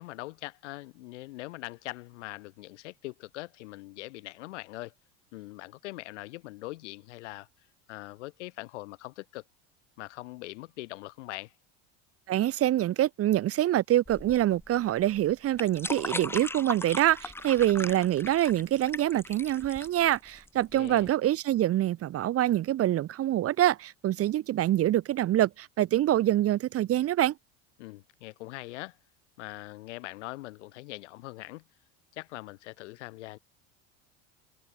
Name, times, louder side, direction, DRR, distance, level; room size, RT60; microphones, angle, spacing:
voice 1, 0.0-4.9 5.3-7.5 7.9-9.4 10.0-11.5 20.7-21.1 27.8-29.0 29.4-31.7 32.1-33.4, left 19 dB, 85° left, 4.8 m, -42 dB
voice 2, 12.3-27.3, right 13 dB, 40° right, 1.3 m, -25 dB
sound 1, 14.1-21.1, left 2 dB, 5° left, 1.9 m, -39 dB
supercardioid pair, 110°, 35 cm